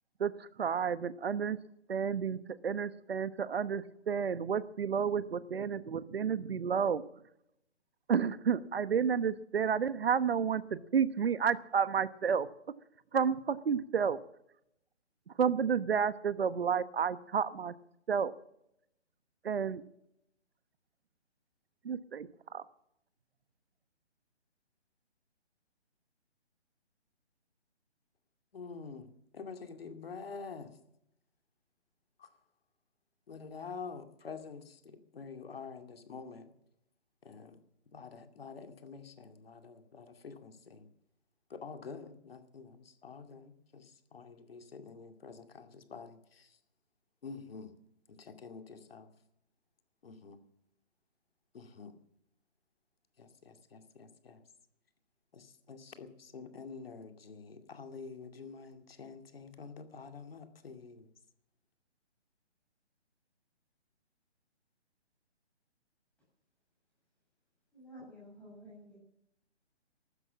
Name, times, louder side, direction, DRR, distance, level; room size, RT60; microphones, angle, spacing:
voice 1, 0.2-1.6 1.9-7.0 8.1-12.5 13.1-14.2 15.3-17.7 18.1-18.3 19.4-19.8 21.8-22.6, right 7 dB, 60° right, 15 dB, 1.2 m, -31 dB
voice 2, 28.5-30.8 32.2-32.3 33.3-36.5 37.2-37.6 37.9-40.9 41.5-46.6 47.2-47.7 48.1-49.1 50.0-50.4 51.5-52.0 53.2-54.4 55.3-61.1, left 5 dB, 55° left, 7 dB, 2.4 m, -47 dB
voice 3, 67.7-69.0, equal, 5° left, -6 dB, 7.4 m, -51 dB
14.5 x 13.0 x 7.4 m, 0.77 s
hypercardioid pair, 165°, 34 cm